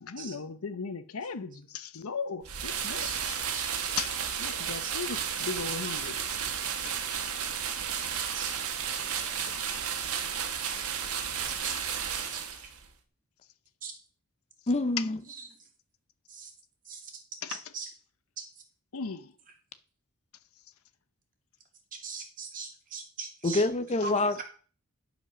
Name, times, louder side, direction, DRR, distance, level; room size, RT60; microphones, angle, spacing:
voice 1, 0.0-3.3 4.0-6.2 6.8-7.2 9.5-9.8 10.3-10.4 15.0-15.1 17.4-17.6 18.9-19.3 23.9-24.0, left 5 dB, 75° left, 0.7 m, -37 dB
sound 1, 2.4-12.8, right 8 dB, 85° right, 1.4 m, -33 dB
voice 2, 3.5-3.9 4.4-5.3 5.8-6.0 6.4-6.5 8.1-8.6 10.6-10.7 11.6-11.8 12.3-12.4 13.8-13.9 15.3-15.7 16.3-16.5 16.9-17.9 18.4-18.6 21.9-23.6 24.0-24.4, right 5 dB, 40° right, 2.4 m, -42 dB
voice 3, 14.7-15.2 23.4-24.4, left 2 dB, 30° left, 0.6 m, -26 dB
11.0 x 5.1 x 6.1 m
head